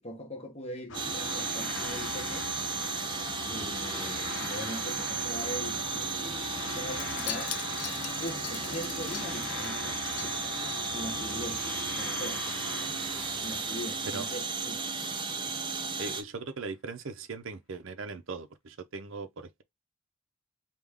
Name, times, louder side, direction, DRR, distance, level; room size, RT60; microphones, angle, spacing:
voice 1, 0.0-2.5 3.5-6.3 6.6-7.5 8.2-11.7 11.9-12.4 13.4-15.0, equal, 30° left, 1.1 m, -41 dB
sound 1, 0.9-15.2, left 4 dB, 60° left, 0.8 m, -41 dB
sound 2, 0.9-16.2, right 4 dB, 20° right, 0.5 m, -34 dB
Wind chime, 6.9-11.4 11.7-12.0 12.2-12.3, left 12 dB, 85° left, 0.5 m, -42 dB
voice 2, 16.0-19.6, right 4 dB, 65° right, 0.6 m, -39 dB
3.5 x 2.4 x 3.5 m
head